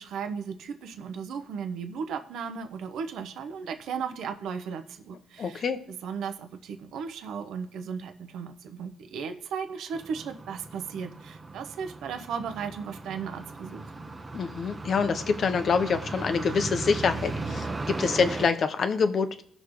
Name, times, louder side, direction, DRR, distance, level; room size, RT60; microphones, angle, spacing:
voice 1, 0.0-5.6 6.0-13.8, right 6 dB, 80° right, 6 dB, 1.0 m, -36 dB
voice 2, 5.4-5.8 14.3-19.4, left 5 dB, 55° left, 9 dB, 1.0 m, -26 dB
sound 1, 9.9-18.5, right 3 dB, 25° right, 1.0 m, -37 dB
17.5 x 6.4 x 3.3 m, 0.65 s
cardioid pair, 90°, 0 cm